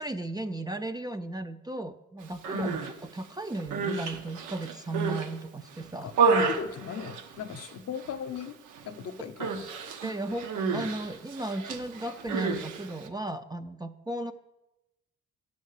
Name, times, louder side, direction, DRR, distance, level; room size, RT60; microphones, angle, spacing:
voice 1, 0.0-2.9 3.1-6.1 9.2-9.3 10.0-14.3, right 2 dB, 15° right, 9 dB, 0.4 m, -35 dB
Human voice, 2.3-2.9 3.5-5.3 5.7-7.7 8.0-8.5 8.7-8.9 9.4-13.1, right 4 dB, 80° right, 1.0 m, -30 dB
voice 2, 6.3-8.5 8.8-9.5, left 7 dB, 55° left, 10 dB, 0.7 m, -38 dB
9.0 x 5.4 x 6.6 m, 0.93 s
cardioid pair, 90°, 30 cm